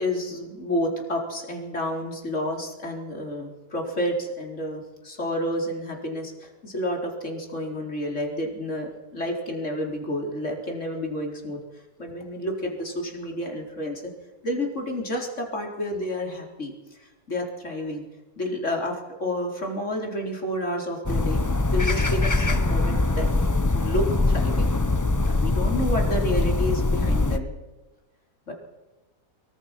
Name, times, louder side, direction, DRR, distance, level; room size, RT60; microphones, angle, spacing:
voice 1, 0.0-14.0 14.4-18.0 18.4-21.4 21.7-23.3 23.7-24.7 25.0-27.5 28.5-28.6, left 1 dB, 45° left, 1 dB, 4.6 m, -30 dB
sound 1, 21.0-27.4, left 2 dB, 15° left, 0.6 m, -22 dB
24.5 x 23.5 x 6.0 m, 1.1 s
omnidirectional pair, 1.7 m